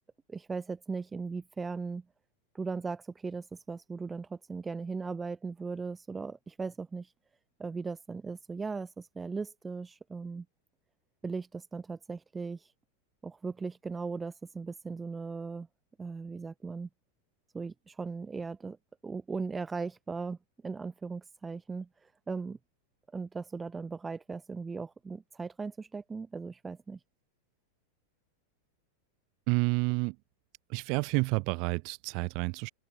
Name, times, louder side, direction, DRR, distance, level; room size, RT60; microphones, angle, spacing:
voice 1, 0.3-2.0 2.5-7.1 7.6-10.4 11.2-12.7 13.2-15.7 16.0-16.9 17.5-18.8 19.0-20.4 20.6-22.6 23.1-27.0, right 4 dB, 15° right, 1.5 m, -38 dB
voice 2, 29.5-30.2 30.7-32.7, right 32 dB, 45° right, 4.2 m, -29 dB
figure-of-eight pair, 90°, 0 cm